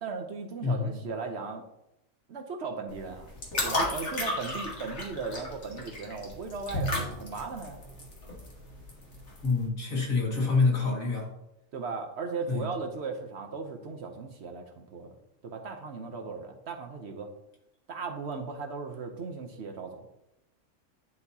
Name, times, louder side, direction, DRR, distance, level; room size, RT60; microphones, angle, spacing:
voice 1, 0.0-1.6 2.3-3.3 3.6-7.8 11.7-15.1 15.4-17.3 17.9-20.1, right 4 dB, 60° right, 4 dB, 0.9 m, -37 dB
voice 2, 0.6-1.0 9.4-11.3 12.5-12.7, left 4 dB, 80° left, -3 dB, 2.4 m, -26 dB
sound 1, 2.9-9.6, left 1 dB, 55° left, 1.8 m, -34 dB
10.5 x 4.2 x 2.7 m, 0.86 s
omnidirectional pair, 1.4 m